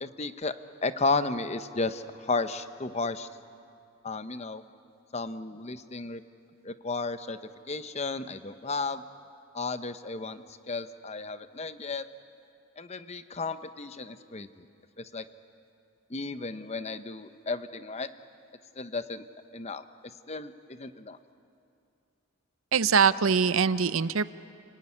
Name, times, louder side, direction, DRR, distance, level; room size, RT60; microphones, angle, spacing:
voice 1, 0.0-0.5 0.8-3.3 4.0-4.6 5.1-6.2 6.6-7.4 7.7-9.0 9.5-12.0 12.8-14.7 15.0-15.2 16.1-18.1 18.8-19.2 19.5-19.8 20.3-21.2, left 3 dB, 30° left, 11 dB, 0.8 m, -33 dB
voice 2, 22.7-24.2, right 6 dB, 75° right, 15 dB, 0.7 m, -23 dB
29.5 x 18.5 x 9.8 m, 2.5 s
head